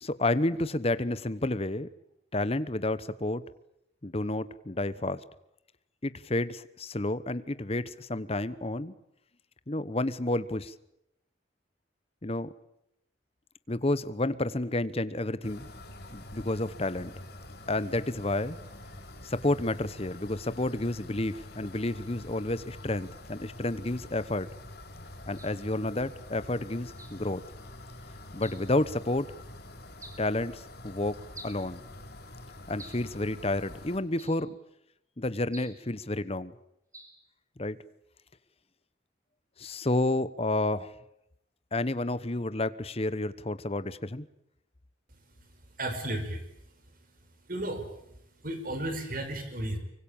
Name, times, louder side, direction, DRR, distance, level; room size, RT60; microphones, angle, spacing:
voice 1, 0.0-1.9 2.3-3.4 4.0-5.2 6.0-8.9 9.7-10.7 12.2-12.5 13.7-15.7 16.1-17.1 17.7-18.6 19.2-24.5 25.3-27.4 28.3-29.3 30.2-31.8 32.7-34.6 35.2-36.5 37.6-37.8 39.6-40.9 41.7-44.3, left 2 dB, 30° left, 15 dB, 1.0 m, -30 dB
sound 1, 15.4-34.0, left 1 dB, 55° left, 4.1 m, -46 dB
sound 2, 25.4-25.6 27.0-27.2 28.4-28.7 30.0-30.3 31.3-31.7 32.8-33.1 34.2-34.5 35.5-35.8 36.9-37.2, right 2 dB, 15° right, 4.3 m, -49 dB
voice 2, 45.8-46.4 47.5-47.8 48.4-49.8, right 1 dB, 50° right, 7 dB, 5.4 m, -33 dB
24.5 x 24.0 x 8.9 m, 0.79 s
head